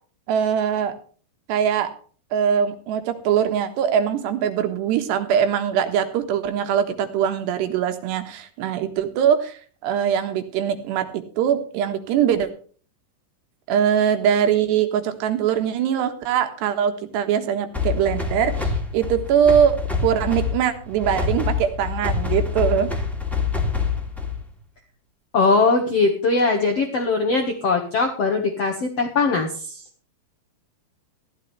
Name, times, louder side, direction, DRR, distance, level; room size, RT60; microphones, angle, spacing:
voice 1, 0.3-0.9 1.5-1.9 2.3-12.5 13.7-19.8 20.0-22.9, right 8 dB, 70° right, 8 dB, 3.3 m, -22 dB
sound 1, 17.7-24.5, left 5 dB, ahead, 1.8 m, -26 dB
voice 2, 25.3-29.8, left 3 dB, 80° left, 2 dB, 1.3 m, -21 dB
15.0 x 13.0 x 3.3 m, 0.42 s
omnidirectional pair, 5.5 m